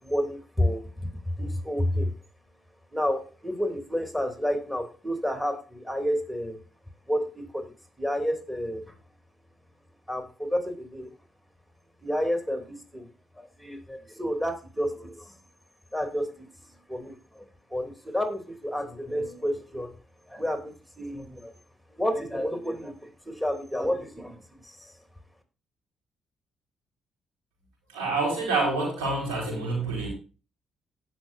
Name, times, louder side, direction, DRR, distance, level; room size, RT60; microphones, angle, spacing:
voice 1, 0.0-0.9 1.3-2.1 2.9-6.6 7.1-7.7 8.0-8.9 10.1-11.1 12.0-13.1 13.4-15.3 15.9-17.4 17.7-19.9 20.3-21.5 22.0-24.9, equal, 5° right, 5 dB, 2.8 m, -30 dB
voice 2, 27.9-30.1, right 3 dB, 85° right, 0 dB, 5.0 m, -27 dB
18.5 x 6.2 x 2.6 m, 0.34 s
hypercardioid pair, 55°, 0 cm